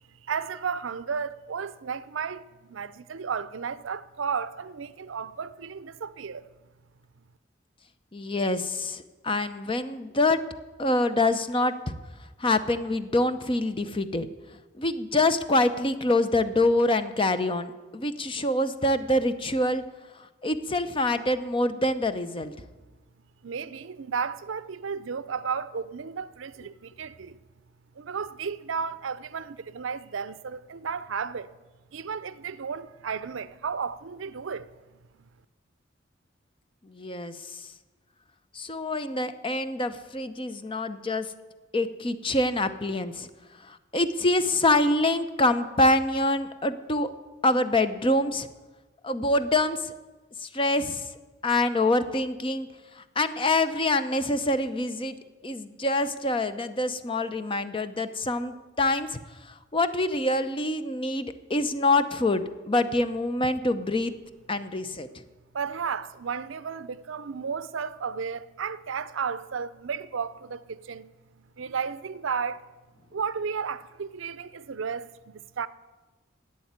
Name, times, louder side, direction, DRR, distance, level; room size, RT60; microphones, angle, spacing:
voice 1, 0.1-6.5 23.4-27.4 28.0-31.5 31.9-34.7 35.2-35.3 65.5-71.1 71.6-72.6 73.1-75.7, right 6 dB, 75° right, 0.5 m, -33 dB
voice 2, 8.1-10.4 10.8-11.9 12.4-14.3 14.8-19.8 20.2-22.5 36.8-37.7 38.5-41.3 41.7-43.3 43.6-47.1 47.4-48.5 49.0-49.9 50.4-51.1 51.4-52.7 53.0-55.2 55.4-64.1 64.5-65.1, left 2 dB, 25° left, 0.7 m, -26 dB
11.5 x 8.4 x 9.5 m
head